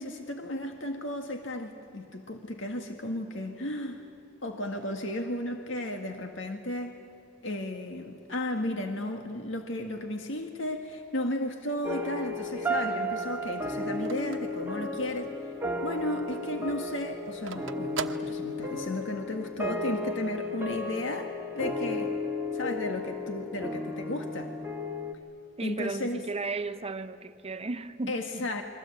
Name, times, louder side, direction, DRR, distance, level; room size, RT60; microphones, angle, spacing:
voice 1, 0.0-4.1 4.4-7.0 7.4-15.3 15.8-22.2 22.5-24.5 25.6-26.2 28.1-28.6, left 1 dB, 70° left, 1.9 m, -34 dB
sound 1, 11.8-25.1, left 1 dB, 10° right, 1.9 m, -34 dB
Telephone, 12.0-15.4 15.8-15.9 16.2-19.1, right 6 dB, 70° right, 1.1 m, -41 dB
voice 2, 25.6-28.5, right 3 dB, 30° right, 0.9 m, -35 dB
29.0 x 22.5 x 8.7 m
head